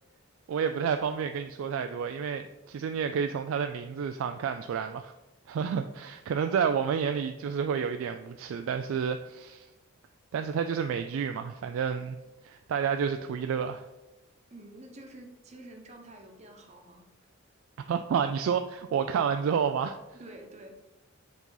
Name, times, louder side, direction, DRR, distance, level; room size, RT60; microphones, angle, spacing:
voice 1, 0.5-5.1 5.5-9.7 10.3-12.2 12.4-13.9 17.9-20.0, right 7 dB, 80° right, 7 dB, 0.3 m, -30 dB
voice 2, 14.5-17.1 20.1-20.8, right 1 dB, 35° right, 2 dB, 0.9 m, -48 dB
7.2 x 4.0 x 3.9 m, 1.0 s
head